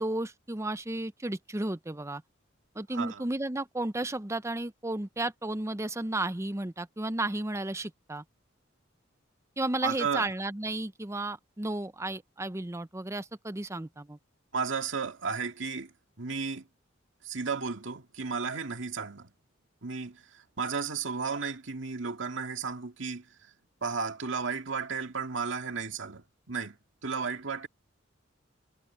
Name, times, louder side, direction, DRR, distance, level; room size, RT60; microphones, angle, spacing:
voice 1, 0.0-2.2 2.7-8.2 9.6-14.2, right 2 dB, 15° right, 0.7 m, -33 dB
voice 2, 2.9-3.2 9.8-10.3 14.5-15.9 16.2-16.7 17.2-19.3 19.8-23.5 23.8-26.8 27.0-27.7, right 5 dB, 70° right, 2.2 m, -34 dB
head